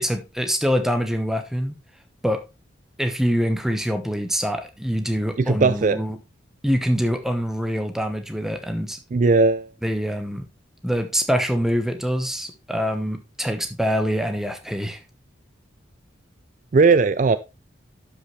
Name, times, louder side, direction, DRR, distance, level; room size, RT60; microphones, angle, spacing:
voice 1, 0.0-1.8 2.2-2.4 3.0-6.2 6.6-9.0 9.8-10.5 10.8-15.0, equal, ahead, 1.0 m, -24 dB
voice 2, 5.4-6.0 9.1-9.7 16.7-17.4, right 4 dB, 40° right, 0.4 m, -17 dB
11.5 x 5.5 x 3.2 m
head